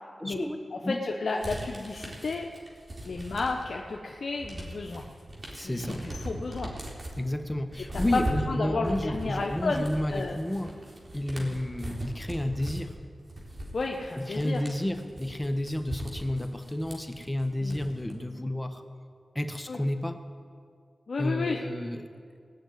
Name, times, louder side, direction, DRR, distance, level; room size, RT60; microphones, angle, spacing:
voice 1, 0.2-0.6 0.8-1.0 5.5-6.1 7.2-10.8 11.1-13.0 14.1-18.8 19.3-20.2 21.2-22.1, left 1 dB, 15° left, 7 dB, 1.5 m, -31 dB
voice 2, 0.7-2.5 3.0-5.0 5.6-6.7 8.1-9.8 10.1-10.4 11.4-11.5 13.7-14.6 17.6-17.8 19.7-19.8 21.1-21.6, left 3 dB, 65° left, 1 dB, 0.9 m, -32 dB
sound 1, 1.4-3.8 4.2-18.1, right 1 dB, 45° right, 3.9 m, -39 dB
19.5 x 6.6 x 9.3 m, 2.2 s
cardioid pair, 45°, 0 cm